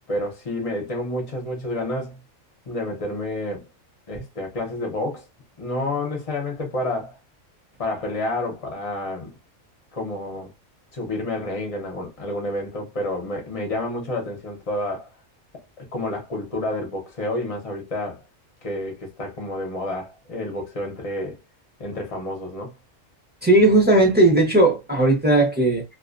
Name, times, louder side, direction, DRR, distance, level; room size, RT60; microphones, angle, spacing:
voice 1, 0.1-2.2 2.7-3.6 4.1-5.2 5.6-7.2 7.8-9.3 9.9-10.5 10.9-15.1 15.8-18.2 18.6-21.4 21.8-22.7, left 1 dB, 40° left, 0.5 m, -29 dB
voice 2, 23.4-25.8, right 2 dB, 10° right, 0.5 m, -17 dB
2.4 x 2.1 x 2.4 m
omnidirectional pair, 1.4 m